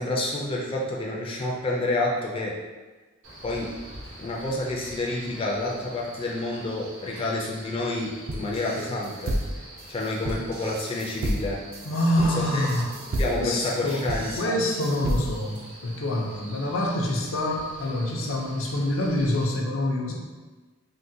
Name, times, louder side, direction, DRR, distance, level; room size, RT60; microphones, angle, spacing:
voice 1, 0.0-2.5 3.4-3.7 4.2-9.3 9.9-11.6 12.2-12.3 12.5-12.7 13.1-14.5, left 2 dB, 25° left, -3 dB, 0.3 m, -29 dB
Male speech man speaking, 3.2-19.4, right 1 dB, 80° right, 0.9 m, -45 dB
sound 1, 8.3-15.6, right 1 dB, 50° right, 0.3 m, -31 dB
voice 2, 11.8-12.8 13.4-20.1, left 1 dB, 85° left, -1 dB, 0.5 m, -26 dB
3.6 x 2.1 x 2.7 m, 1.3 s
head